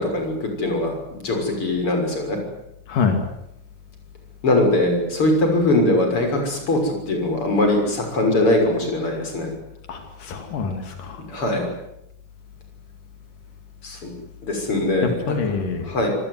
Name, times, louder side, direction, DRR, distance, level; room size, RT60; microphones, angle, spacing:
voice 1, 0.0-2.4 4.4-9.5 11.3-11.7 13.8-14.0 14.4-15.1 15.8-16.1, left 1 dB, 40° left, 3 dB, 7.1 m, -21 dB
voice 2, 2.9-3.2 9.9-11.2 15.3-15.9, left 5 dB, 90° left, 6 dB, 4.2 m, -25 dB
25.5 x 19.5 x 9.6 m, 0.82 s
omnidirectional pair, 3.6 m